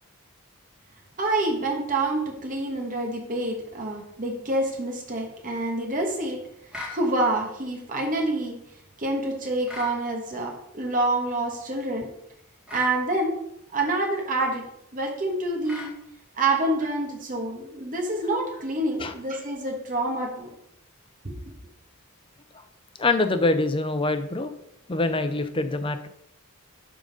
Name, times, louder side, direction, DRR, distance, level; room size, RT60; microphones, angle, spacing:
voice 1, 1.2-6.4 6.9-8.6 9.0-12.1 12.7-13.3 13.7-14.6 14.9-15.9 16.4-20.5 21.2-21.4, right 2 dB, 40° right, 1 dB, 1.4 m, -27 dB
sound 1, 6.7-7.0 9.7-10.0 12.7-13.0 15.7-16.0, left 3 dB, 5° right, 2.2 m, -37 dB
voice 2, 23.0-24.5 24.9-26.1, left 2 dB, 25° left, 8 dB, 0.6 m, -24 dB
11.0 x 3.9 x 5.3 m, 0.76 s
head